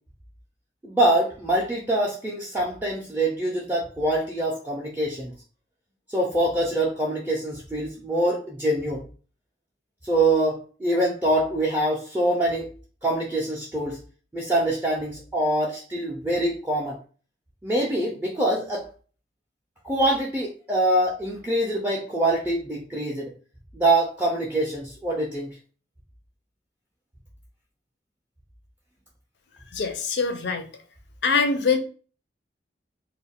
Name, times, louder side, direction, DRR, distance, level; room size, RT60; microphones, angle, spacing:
voice 1, 0.8-5.3 6.1-9.0 10.0-12.7 13.0-14.0 14.3-17.0 17.6-18.8 19.8-23.3 23.7-25.5, right 1 dB, 10° right, -3 dB, 0.4 m, -24 dB
voice 2, 29.7-30.6 31.2-31.8, left 5 dB, 70° left, 7 dB, 0.4 m, -23 dB
2.2 x 2.1 x 3.5 m, 0.39 s
head